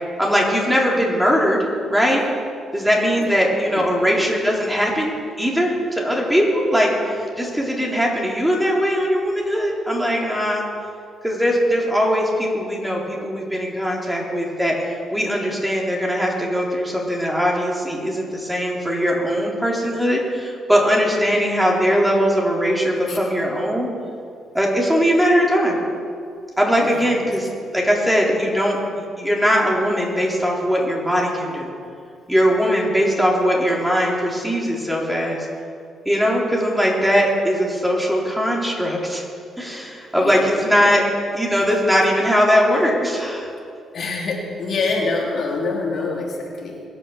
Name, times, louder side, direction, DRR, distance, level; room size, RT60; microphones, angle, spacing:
voice 1, 0.2-1.6 1.9-2.3 2.7-5.1 5.4-10.6 11.2-23.9 24.5-25.8 26.6-27.5 27.7-28.8 29.2-31.7 32.3-35.5 36.1-39.2 39.6-41.0 41.3-43.5, equal, 5° right, -3 dB, 3.7 m, -20 dB
voice 2, 3.7-4.2 23.1-23.3 26.8-27.1 40.1-40.6 41.5-41.7 43.9-46.8, left 3 dB, 55° left, -2 dB, 3.2 m, -26 dB
22.5 x 7.9 x 7.3 m, 2.4 s
cardioid pair, 90°, 0 cm